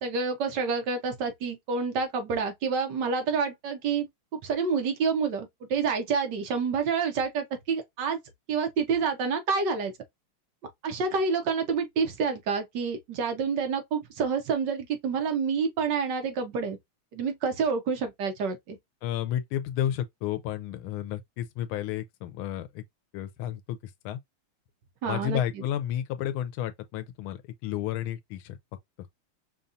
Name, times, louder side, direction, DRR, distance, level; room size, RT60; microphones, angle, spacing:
voice 1, 0.0-8.2 8.5-9.9 10.8-16.8 17.1-18.8 25.0-25.4, right 5 dB, 65° right, 1.3 m, -28 dB
voice 2, 19.0-22.8 23.1-23.8 24.0-24.2 25.1-28.6, left 11 dB, 85° left, 1.4 m, -31 dB
5.4 x 2.3 x 2.6 m
omnidirectional pair, 2.2 m